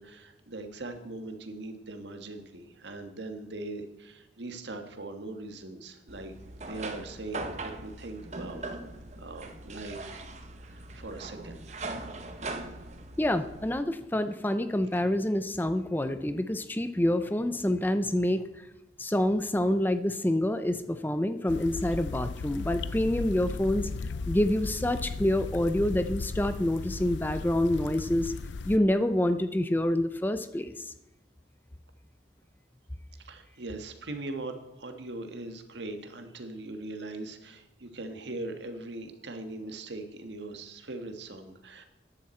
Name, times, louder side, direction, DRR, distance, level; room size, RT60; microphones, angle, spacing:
voice 1, 0.0-8.6 9.2-10.2 10.6-11.8 33.2-41.8, right 2 dB, 75° right, 6 dB, 1.5 m, -41 dB
sound 1, 6.1-13.8, right 2 dB, 40° right, 1.0 m, -40 dB
voice 2, 13.2-18.5 19.0-23.9 24.3-28.3 28.6-30.9, left 1 dB, 10° left, 10 dB, 0.5 m, -27 dB
sound 2, 21.5-28.8, left 4 dB, 80° left, 0.5 m, -36 dB
14.0 x 10.5 x 4.4 m, 1.0 s
head